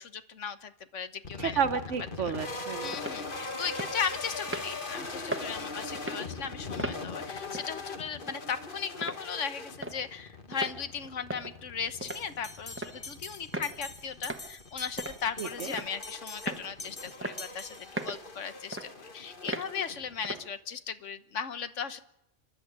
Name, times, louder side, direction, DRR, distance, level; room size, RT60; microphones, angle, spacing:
voice 1, 0.0-1.6 2.2-2.3 2.8-22.0, left 7 dB, 85° left, 11 dB, 1.4 m, -37 dB
sound 1, 1.2-20.4, left 3 dB, 45° left, 1.7 m, -41 dB
voice 2, 1.4-2.9 15.4-15.7, right 7 dB, 80° right, 10 dB, 1.3 m, -31 dB
sound 2, 2.3-2.4 2.9-3.2 3.8-3.9 4.5-4.7 5.3-5.5 5.9-6.2 6.8-7.0 7.5-7.7 8.3-8.4 9.0-9.2 9.8-10.0 10.5-10.8 11.3-11.5 12.0-12.2 12.8-13.0 13.5-13.7 14.3-14.4 15.0-15.2 15.7-16.0 16.5-16.7 17.2-17.4 18.0-18.2 18.7-18.9 19.5-19.7 20.2-20.4, right 1 dB, 10° right, 1.0 m, -36 dB
Bell, 12.1-18.3, left 3 dB, 30° left, 1.5 m, -46 dB
29.5 x 11.0 x 8.7 m, 0.84 s
omnidirectional pair, 1.2 m